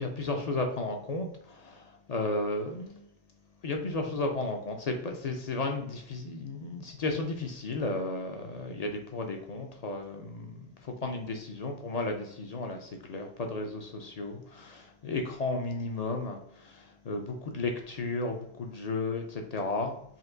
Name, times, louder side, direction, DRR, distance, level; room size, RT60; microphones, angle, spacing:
voice 1, 0.0-3.1 3.6-20.0, left 2 dB, 60° left, 3 dB, 0.4 m, -34 dB
4.4 x 2.5 x 3.7 m, 0.72 s
omnidirectional pair, 1.3 m